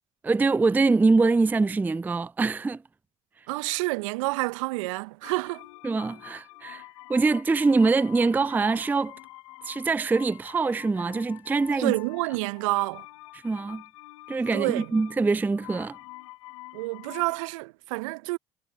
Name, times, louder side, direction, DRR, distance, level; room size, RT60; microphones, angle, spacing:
voice 1, 0.2-2.8 5.8-6.8 7.1-9.1 9.7-11.9 13.4-13.8 14.3-16.0, right 3 dB, 10° right, 0.4 m, -24 dB
voice 2, 3.5-5.7 11.8-13.1 14.5-14.9 16.7-18.4, right 24 dB, 70° right, 1.0 m, -28 dB
sound 1, 5.2-17.4, left 20 dB, 75° left, 1.0 m, -47 dB
figure-of-eight pair, 55°, 17 cm